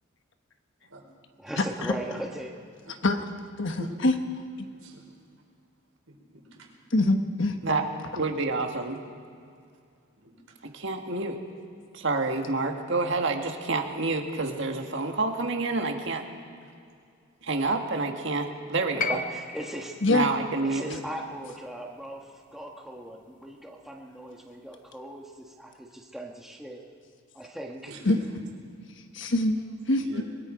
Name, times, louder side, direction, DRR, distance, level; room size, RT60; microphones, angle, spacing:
voice 1, 1.4-2.5 7.7-7.8 18.9-20.0 20.6-26.8 27.3-27.9, right 1 dB, ahead, -1 dB, 1.3 m, -38 dB
voice 2, 3.6-4.1 6.9-7.5 20.0-20.3 28.1-28.2 29.1-29.6 29.9-30.0, left 2 dB, 60° left, 6 dB, 1.3 m, -23 dB
voice 3, 6.1-6.7 10.2-10.5 27.8-28.2 29.9-30.2, right 2 dB, 75° right, -1 dB, 4.8 m, -44 dB
voice 4, 8.2-9.0 10.7-11.4 11.9-16.2 17.4-19.2 20.1-21.0, right 3 dB, 60° right, 3 dB, 1.7 m, -28 dB
sound 1, 19.0-23.2 24.4-24.5, left 4 dB, 40° left, 0.7 m, -37 dB
24.5 x 22.0 x 5.1 m, 2.3 s
head